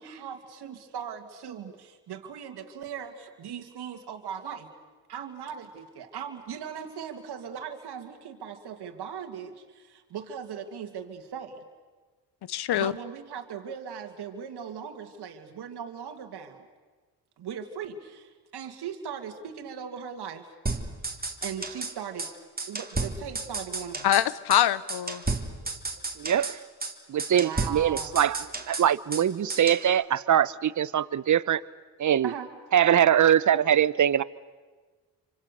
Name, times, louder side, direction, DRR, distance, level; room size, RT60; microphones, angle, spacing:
voice 1, 0.0-4.7 5.1-11.6 12.7-16.7 17.4-20.5 21.2-22.3 22.6-24.1 27.3-28.2 32.2-32.5, right 7 dB, 70° right, 2.4 m, -39 dB
voice 2, 12.5-12.9 24.0-25.2, left 11 dB, 70° left, 1.0 m, -24 dB
sound 1, 20.7-21.9 22.2-22.3 22.6-24.3 24.5-24.6 24.9-26.6 26.8-26.9 27.2-29.2 29.5-29.8, right 3 dB, 20° right, 3.0 m, -32 dB
voice 3, 26.2-26.6 27.1-31.6 32.0-32.3 32.7-34.2, right 10 dB, 45° right, 0.9 m, -23 dB
28.5 x 25.0 x 6.8 m
supercardioid pair, 50°, 41 cm